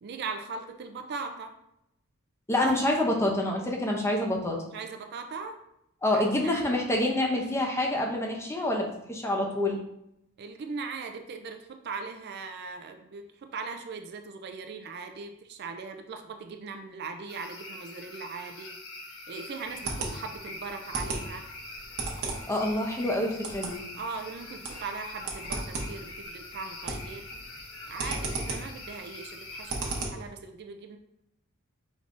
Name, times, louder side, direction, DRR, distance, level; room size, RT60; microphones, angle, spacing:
voice 1, 0.0-1.5 4.7-5.6 6.1-6.2 10.4-18.8 19.3-21.4 23.9-27.3 27.9-31.0, right 4 dB, 45° right, 6 dB, 0.3 m, -39 dB
voice 2, 2.5-4.6 6.0-9.8 22.5-23.8, left 1 dB, 10° left, 0 dB, 0.6 m, -27 dB
sound 1, 17.3-30.0, left 2 dB, 70° left, 0.8 m, -44 dB
sound 2, 19.6-30.3, right 3 dB, 70° right, 0.9 m, -37 dB
5.0 x 3.3 x 2.5 m, 0.80 s
head